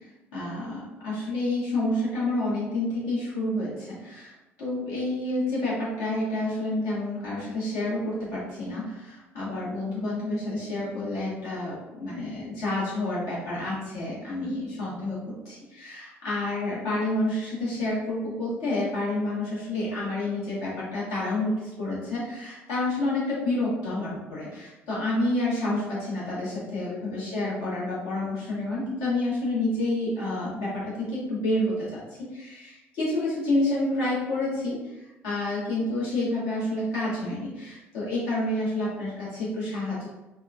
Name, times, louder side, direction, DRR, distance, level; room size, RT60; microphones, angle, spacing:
voice 1, 0.3-34.8 35.2-40.1, left 2 dB, 60° left, -8 dB, 1.3 m, -29 dB
3.5 x 2.2 x 2.2 m, 1.0 s
figure-of-eight pair, 55°, 7 cm